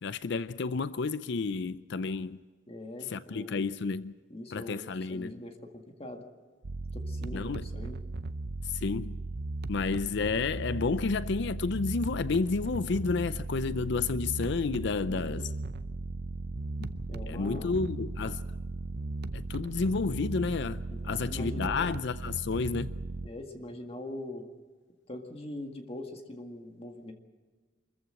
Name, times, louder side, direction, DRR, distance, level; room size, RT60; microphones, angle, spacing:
voice 1, 0.0-2.4 3.1-4.1 4.5-5.4 7.3-7.6 8.7-9.2 9.7-15.5 16.8-16.9 17.2-18.4 19.3-22.9, left 4 dB, 65° left, 0.5 m, -31 dB
voice 2, 2.7-3.7 4.3-6.2 6.9-8.0 14.9-15.5 17.1-17.8 20.9-22.1 23.2-24.5 25.1-27.1, left 1 dB, 30° left, 1.9 m, -42 dB
sound 1, 6.6-23.3, right 2 dB, 55° right, 0.7 m, -37 dB
24.5 x 14.5 x 7.7 m
head